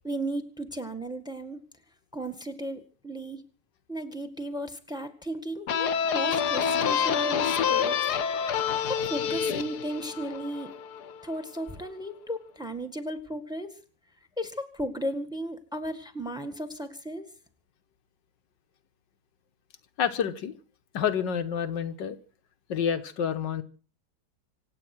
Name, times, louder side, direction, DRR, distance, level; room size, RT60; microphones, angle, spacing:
voice 1, 0.0-1.6 2.1-3.4 3.9-7.9 8.9-10.7 11.2-13.7 14.4-17.3, right 1 dB, ahead, 10 dB, 1.7 m, -35 dB
sound 1, 5.7-11.1, left 7 dB, 65° left, 1.5 m, -27 dB
voice 2, 20.0-20.5 20.9-22.2 22.7-23.6, left 8 dB, 85° left, 8 dB, 1.8 m, -28 dB
25.5 x 8.8 x 6.1 m, 0.40 s
omnidirectional pair, 1.9 m